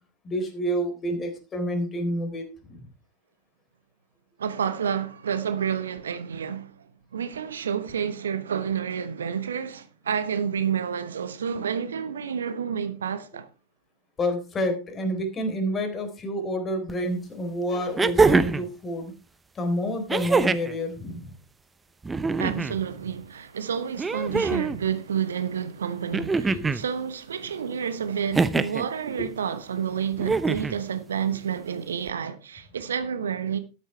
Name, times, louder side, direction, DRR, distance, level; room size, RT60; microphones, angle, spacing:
voice 1, 0.2-2.9 14.2-19.1 19.6-21.4 26.5-26.7 29.2-29.3, equal, 20° left, 3.8 m, -29 dB
voice 2, 4.4-6.9 7.1-13.5 22.4-33.6, right 7 dB, 65° right, 1.1 m, -29 dB
sound 1, 16.9-17.0 18.0-18.7 20.1-20.8 22.0-22.8 24.0-24.8 26.1-26.8 28.3-28.8 30.2-30.8 32.1-32.2, right 4 dB, 15° right, 0.7 m, -23 dB
13.0 x 11.5 x 3.4 m
figure-of-eight pair, 90°, 0 cm